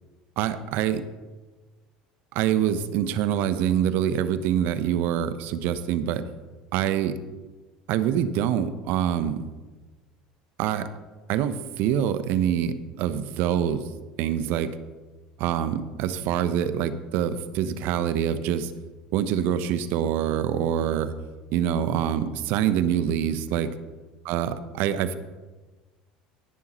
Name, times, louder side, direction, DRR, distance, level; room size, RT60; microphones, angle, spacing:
voice 1, 0.4-1.0 2.3-6.2 6.7-7.2 7.9-9.4 10.6-10.9 11.3-13.8 14.2-14.7 15.4-18.7 19.1-21.1 21.5-23.7 24.3-25.1, right 9 dB, 60° right, 12 dB, 0.9 m, -25 dB
17.5 x 11.0 x 3.1 m, 1.3 s
hypercardioid pair, 70°, 4 cm